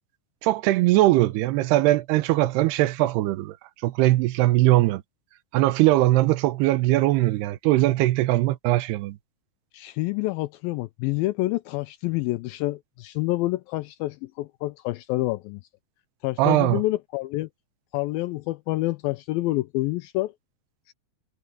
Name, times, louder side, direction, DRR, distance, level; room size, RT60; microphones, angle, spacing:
voice 1, 0.4-3.5 3.8-5.0 5.5-9.2 16.4-16.8, right 16 dB, 85° right, 2.9 m, -20 dB
voice 2, 9.7-15.6 16.2-17.5 17.9-20.3, left 18 dB, 85° left, 2.1 m, -27 dB
omnidirectional pair, 4.6 m